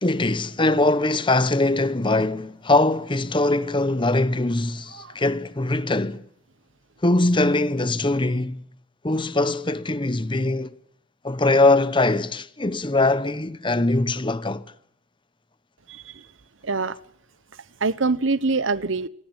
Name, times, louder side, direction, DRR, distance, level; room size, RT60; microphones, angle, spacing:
voice 1, 0.0-6.2 7.0-8.6 9.0-10.8 11.2-14.6, left 2 dB, 25° left, 1.0 m, -22 dB
voice 2, 15.9-16.3 16.6-17.0 17.5-19.1, right 3 dB, 70° right, 1.0 m, -25 dB
28.5 x 19.0 x 8.9 m
head